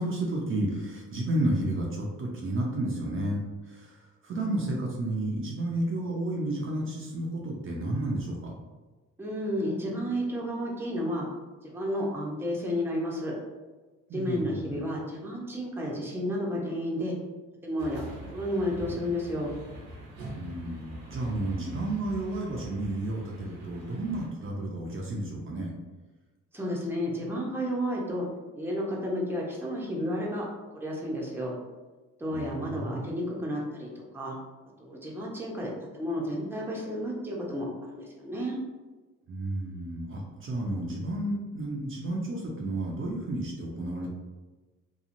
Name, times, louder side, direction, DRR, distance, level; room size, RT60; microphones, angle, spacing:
voice 1, 0.0-8.5 14.1-14.8 20.3-25.7 32.3-33.0 39.3-44.1, right 1 dB, 45° right, -2 dB, 0.6 m, -32 dB
voice 2, 9.2-11.3 11.6-13.4 14.1-17.1 17.6-19.5 26.5-28.3 28.6-30.5 30.7-31.6 32.2-34.3 34.8-38.6, equal, 5° right, -3 dB, 0.7 m, -32 dB
sound 1, 17.8-24.3, right 1 dB, 80° right, 0.9 m, -43 dB
2.9 x 2.3 x 2.5 m, 1.2 s
cardioid pair, 90°, 30 cm